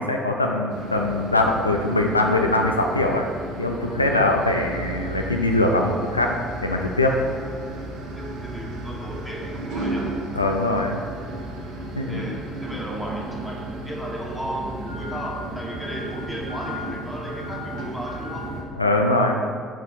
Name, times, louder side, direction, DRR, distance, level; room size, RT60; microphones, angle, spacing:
voice 1, 0.0-3.3 3.6-6.4 6.6-7.1 10.4-11.0 12.0-12.2 18.8-19.4, left 2 dB, 85° left, 2 dB, 0.4 m, -22 dB
sound 1, 0.7-18.6, right 1 dB, 60° right, 1.1 m, -34 dB
voice 2, 8.2-10.1 12.1-18.5, equal, ahead, -3 dB, 1.8 m, -35 dB
6.7 x 5.9 x 4.5 m, 2.2 s
figure-of-eight pair, 50°, 0 cm